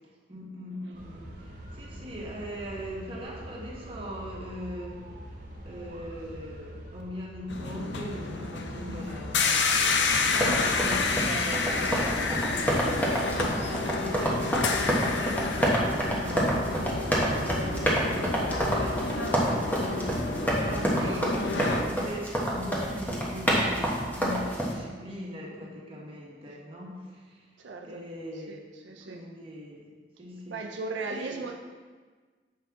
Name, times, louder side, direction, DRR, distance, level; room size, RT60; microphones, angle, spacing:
voice 1, 0.3-5.0 5.6-16.8 17.3-27.4 27.8-28.7 28.9-29.9 30.2-30.7 31.1-31.4, equal, 30° right, -4 dB, 1.4 m, -40 dB
sound 1, 0.9-20.5, equal, 50° right, 1.1 m, -44 dB
sound 2, 7.5-21.8, left 4 dB, 75° left, 0.7 m, -30 dB
sound 3, 10.3-24.7, equal, 10° left, 1.1 m, -28 dB
voice 2, 21.0-21.3 27.6-28.0 28.5-28.6 28.8-29.2 30.5-31.5, right 3 dB, 85° right, 2 dB, 0.5 m, -37 dB
7.6 x 5.7 x 3.7 m, 1.5 s
head